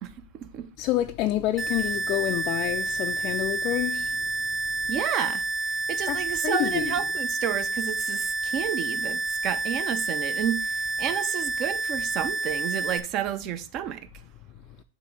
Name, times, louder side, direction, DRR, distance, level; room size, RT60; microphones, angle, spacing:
voice 1, 0.0-0.7 4.9-5.4 5.9-14.1, right 10 dB, 40° right, 0.7 m, -31 dB
voice 2, 0.8-4.2 6.1-7.0, left 15 dB, 45° left, 0.3 m, -28 dB
sound 1, 1.6-13.0, right 3 dB, 5° right, 0.8 m, -29 dB
7.3 x 2.7 x 5.2 m
hypercardioid pair, 115°, 0 cm